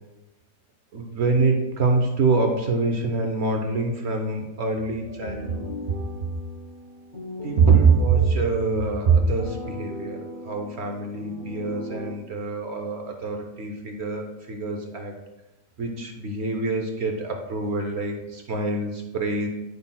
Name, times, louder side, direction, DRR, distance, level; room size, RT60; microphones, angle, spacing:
voice 1, 0.9-5.7 7.4-10.2 10.4-15.1 15.8-19.5, right 4 dB, 60° right, 3 dB, 0.9 m, -24 dB
sound 1, 5.2-12.1, left 1 dB, 40° left, 1.1 m, -38 dB
9.3 x 5.4 x 2.2 m, 0.97 s
omnidirectional pair, 1.5 m